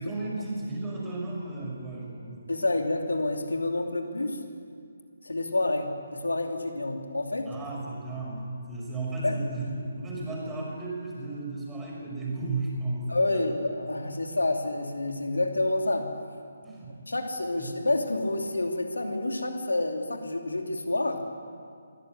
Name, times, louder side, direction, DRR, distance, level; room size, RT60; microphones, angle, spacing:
voice 1, 0.0-2.4 7.5-13.4 16.6-16.9 17.5-17.7, right 2 dB, 10° right, -3 dB, 6.0 m, -34 dB
voice 2, 2.5-4.4 5.2-7.5 9.2-9.3 13.1-16.1 17.1-21.2, left 2 dB, 90° left, 3 dB, 2.9 m, -28 dB
22.5 x 14.0 x 9.7 m, 2.3 s
figure-of-eight pair, 150°, 0 cm